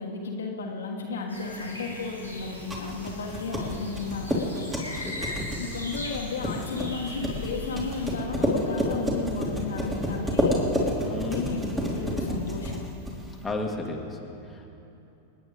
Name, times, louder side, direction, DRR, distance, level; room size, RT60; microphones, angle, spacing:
voice 1, 0.0-4.4 5.6-10.6 11.1-12.8, left 4 dB, 65° left, 0 dB, 1.5 m, -33 dB
sound 1, 1.3-8.1, left 1 dB, 85° right, 2.4 m, -40 dB
sound 2, 2.4-13.4, equal, 15° right, 3.0 m, -30 dB
voice 2, 4.9-5.6 11.0-11.6 13.4-14.7, left 2 dB, 10° left, -1 dB, 1.9 m, -34 dB
28.0 x 9.5 x 3.5 m, 2.9 s
figure-of-eight pair, 90°, 0 cm